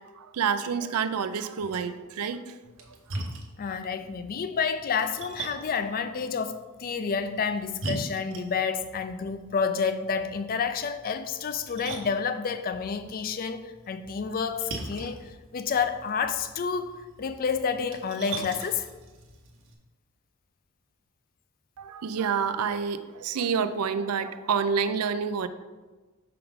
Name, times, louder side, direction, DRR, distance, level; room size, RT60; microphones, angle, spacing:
voice 1, 0.1-2.6 21.8-25.5, right 6 dB, 80° right, 12 dB, 0.4 m, -28 dB
Splash splatter, 2.6-19.7, right 2 dB, 60° right, 1.0 m, -42 dB
voice 2, 3.6-18.9, left 6 dB, 40° left, 10 dB, 0.4 m, -29 dB
6.0 x 4.8 x 3.6 m, 1.2 s
head